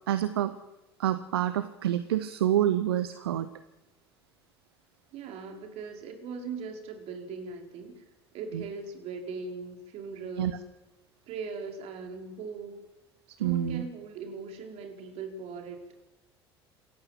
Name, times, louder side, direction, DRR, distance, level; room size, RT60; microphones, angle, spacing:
voice 1, 0.1-0.5 1.0-3.5 8.5-8.6 10.4-10.5 13.4-13.8, right 11 dB, 70° right, 13 dB, 1.1 m, -27 dB
voice 2, 5.1-8.0 8.3-10.6 11.3-12.8 13.3-15.8, right 5 dB, 50° right, 4 dB, 4.9 m, -39 dB
28.0 x 15.0 x 7.8 m, 1.0 s
figure-of-eight pair, 65°, 13 cm